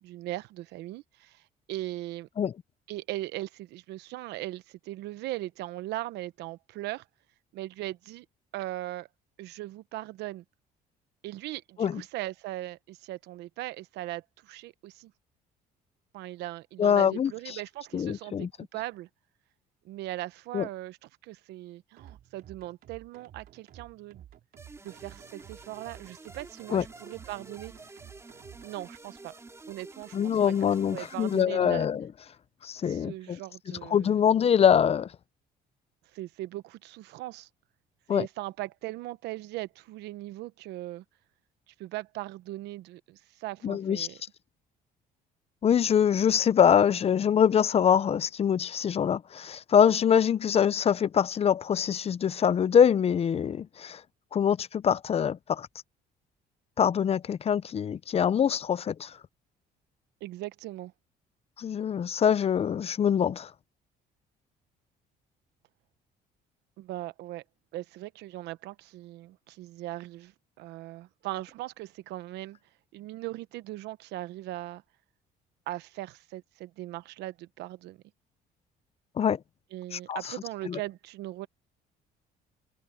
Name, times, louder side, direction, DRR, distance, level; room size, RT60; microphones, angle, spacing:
voice 1, 0.0-2.3 2.9-7.0 7.5-8.2 8.5-9.1 9.4-10.4 11.2-15.1 16.1-19.1 19.8-21.0 21.2-24.2 24.8-27.7 28.6-29.4 29.7-31.9 32.9-34.2 36.1-37.5 38.1-41.0 41.7-44.2 60.2-60.9 66.8-67.4 67.7-72.6 72.9-74.8 75.7-78.0 79.7-81.5, right 16 dB, 85° right, 1.0 m, -39 dB
voice 2, 16.8-17.6 17.9-18.5 20.5-20.7 26.7-26.8 30.1-32.1 32.6-33.4 33.9-35.1 38.1-38.3 43.6-44.1 45.6-54.0 54.3-55.7 56.8-59.1 61.6-63.5 79.2-79.4 79.9-80.2 80.7-80.8, left 8 dB, 35° left, 0.6 m, -24 dB
sound 1, 22.0-28.8, right 11 dB, 60° right, 3.8 m, -52 dB
sound 2, 24.6-31.4, right 3 dB, 15° right, 2.5 m, -49 dB
cardioid pair, 110°, 17 cm